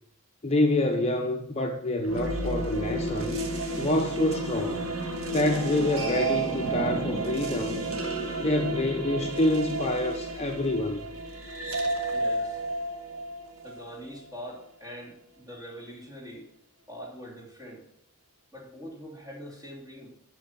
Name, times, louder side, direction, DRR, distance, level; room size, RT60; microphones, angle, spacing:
voice 1, 0.4-3.4 3.8-4.9 5.3-7.9 8.4-11.1, left 1 dB, 30° left, 0.7 m, -27 dB
sound 1, 2.0-14.2, right 2 dB, 70° right, 1.8 m, -31 dB
voice 2, 12.1-12.6 13.6-16.5 16.9-17.8 18.5-20.2, equal, 15° right, 3.1 m, -43 dB
11.5 x 6.7 x 5.8 m
head